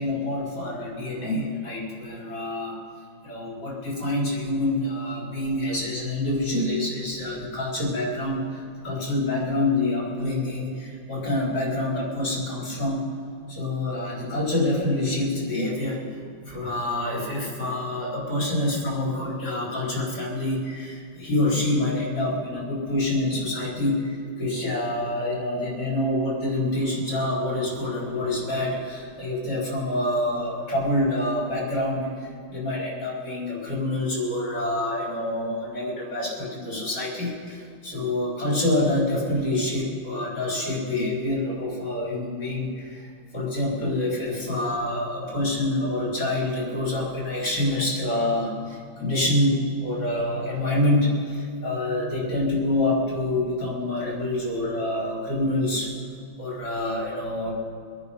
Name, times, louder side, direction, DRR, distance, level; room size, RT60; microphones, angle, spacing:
voice 1, 0.0-2.8 3.2-13.1 13.5-16.0 16.5-55.9 56.4-57.5, left 1 dB, 55° left, -5 dB, 5.7 m, -26 dB
25.5 x 9.7 x 5.6 m, 2.4 s
omnidirectional pair, 2.2 m